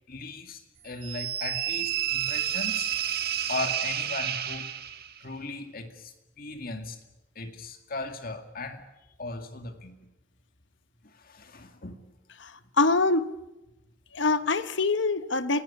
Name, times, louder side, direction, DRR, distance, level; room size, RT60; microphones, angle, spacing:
voice 1, 0.1-2.9 3.5-4.7 5.2-7.0 7.4-8.9 9.2-10.0 11.0-12.0 12.6-12.7, left 3 dB, 45° left, 2.3 m, -37 dB
sound 1, 1.0-5.2, right 11 dB, 50° right, 1.7 m, -30 dB
voice 2, 12.8-13.3 14.1-15.6, left 3 dB, 60° left, 1.2 m, -24 dB
28.5 x 17.5 x 8.6 m
head